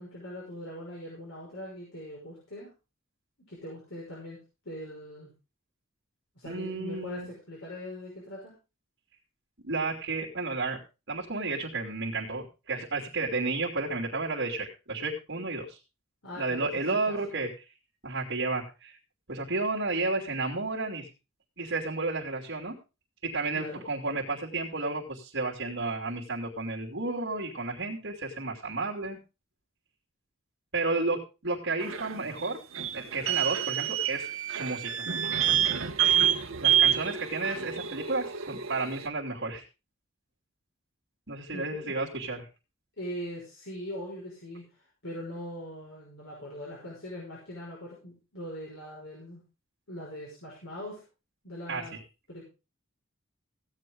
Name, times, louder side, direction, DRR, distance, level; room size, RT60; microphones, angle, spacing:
voice 1, 0.0-2.7 3.5-4.4 4.6-5.3 6.4-8.5 16.2-17.4 23.5-23.8 41.5-41.9 43.0-44.7 45.0-49.4 49.9-51.0 51.4-52.0 52.3-52.4, equal, 65° left, -4 dB, 5.8 m, -41 dB
voice 2, 6.4-7.3 9.6-10.8 11.1-15.8 16.4-17.5 18.0-19.0 19.3-21.1 21.6-22.8 23.3-29.2 30.7-31.2 31.4-32.6 32.9-35.1 36.6-39.6 41.3-42.5 51.7-51.8, right 3 dB, 60° right, -3 dB, 3.0 m, -32 dB
sound 1, 31.8-39.1, right 10 dB, 80° right, 1.2 m, -28 dB
16.5 x 8.7 x 3.9 m, 0.30 s
head